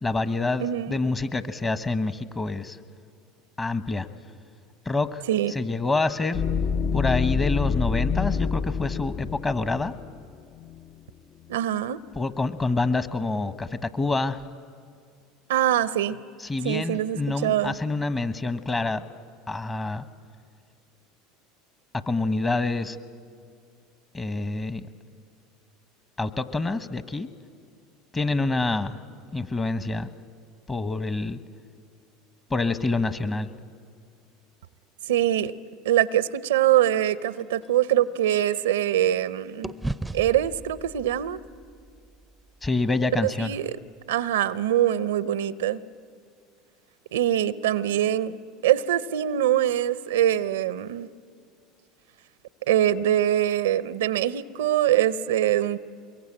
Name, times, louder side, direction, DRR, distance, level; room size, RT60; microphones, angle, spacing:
voice 1, 0.0-2.8 3.6-4.1 4.8-5.2 5.5-6.4 6.9-9.9 12.1-14.4 16.4-19.0 19.5-20.0 21.9-23.0 24.1-24.9 26.2-27.3 28.1-29.0 29.3-30.1 30.7-31.4 32.5-33.5 42.6-43.5, left 3 dB, 20° left, 12 dB, 1.1 m, -27 dB
voice 2, 0.6-1.0 5.3-5.5 11.5-12.0 15.5-16.2 16.6-17.8 35.1-35.5 35.8-39.7 40.1-41.4 43.2-43.8 44.1-45.8 47.1-48.3 48.6-51.1 52.7-55.8, right 12 dB, 80° right, 17 dB, 0.6 m, -23 dB
sound 1, 6.3-10.9, left 5 dB, 45° left, 0.6 m, -27 dB
sound 2, 37.0-39.2 39.6-43.9, right 2 dB, 5° right, 0.6 m, -39 dB
23.5 x 22.5 x 8.8 m, 2.2 s
hypercardioid pair, 85°, 0 cm